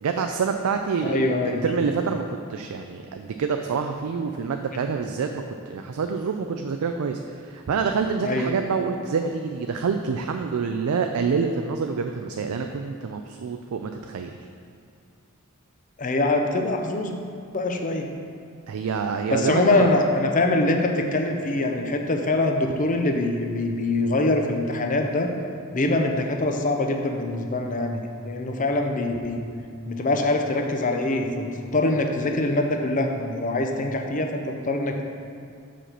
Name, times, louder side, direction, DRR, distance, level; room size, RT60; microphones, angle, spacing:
voice 1, 0.0-1.4 1.6-2.2 2.5-14.3 18.7-19.9, right 5 dB, 75° right, 5 dB, 0.4 m, -27 dB
voice 2, 1.0-1.7 8.2-8.5 16.0-17.2 17.5-18.1 19.3-25.3 25.7-29.5 29.9-35.0, left 2 dB, 35° left, 3 dB, 0.6 m, -24 dB
5.7 x 5.1 x 6.6 m, 2.4 s
head